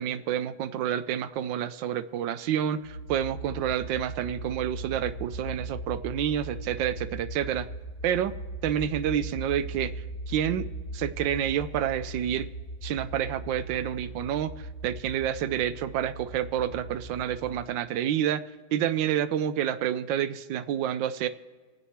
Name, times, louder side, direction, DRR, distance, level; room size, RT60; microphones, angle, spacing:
voice 1, 0.0-7.7 8.0-8.3 8.6-9.9 10.3-12.5 12.8-18.4 18.7-21.3, right 10 dB, 70° right, 13 dB, 1.2 m, -29 dB
sound 1, 2.8-17.5, right 1 dB, 45° right, 3.4 m, -39 dB
27.5 x 9.7 x 3.1 m, 1.5 s
omnidirectional pair, 2.3 m